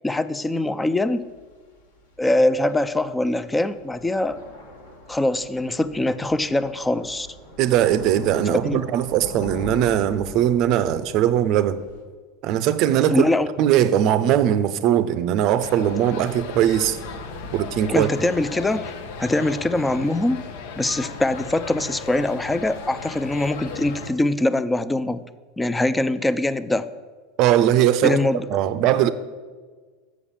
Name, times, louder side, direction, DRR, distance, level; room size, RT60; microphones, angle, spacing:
voice 1, 0.0-1.2 2.2-4.4 5.1-7.3 8.5-8.8 13.1-13.5 17.9-18.9 19.2-20.4 20.8-25.2 25.6-26.8 28.0-28.4, left 2 dB, 10° left, 13 dB, 0.5 m, -23 dB
Thunder / Rain, 1.0-12.0, left 1 dB, 85° left, 1.7 m, -41 dB
voice 2, 7.6-11.8 12.4-13.3 13.6-17.0 17.5-18.1 27.4-28.2 28.5-29.1, right 11 dB, 50° right, 14 dB, 0.5 m, -20 dB
sound 1, 15.6-24.1, left 5 dB, 70° left, 0.9 m, -36 dB
7.2 x 6.3 x 7.0 m, 1.4 s
hypercardioid pair, 85°, 0 cm